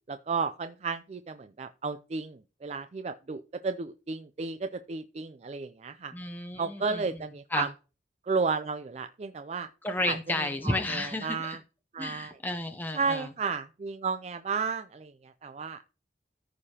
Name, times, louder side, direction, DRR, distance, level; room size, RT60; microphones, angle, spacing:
voice 1, 0.1-6.1 6.6-7.7 8.3-9.7 10.1-11.6 11.9-12.4 12.9-15.8, right 4 dB, 35° right, 10 dB, 0.4 m, -33 dB
voice 2, 6.1-7.0 7.5-7.7 9.8-11.6 12.0-13.3, left 2 dB, 10° left, 5 dB, 0.6 m, -32 dB
14.5 x 4.8 x 2.8 m, 0.33 s
head